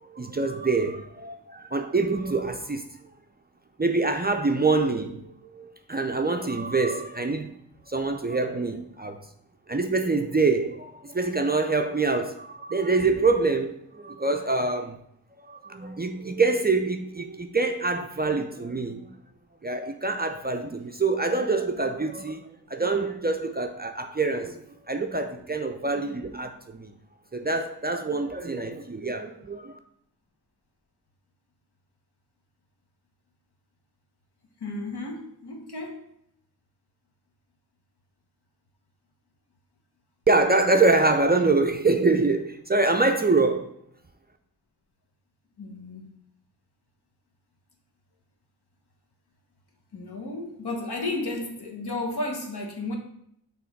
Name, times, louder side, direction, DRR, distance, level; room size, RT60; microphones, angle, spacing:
voice 1, 0.0-3.0 3.8-7.6 7.9-9.2 9.7-15.0 15.4-19.1 19.6-24.6 24.9-26.9 27.3-29.8 40.3-43.7, right 3 dB, 25° right, 0.4 m, -25 dB
voice 2, 34.6-36.0 45.6-46.1 49.9-52.9, left 2 dB, 70° left, 1.3 m, -33 dB
6.2 x 3.5 x 4.4 m
wide cardioid pair, 95°, 41 cm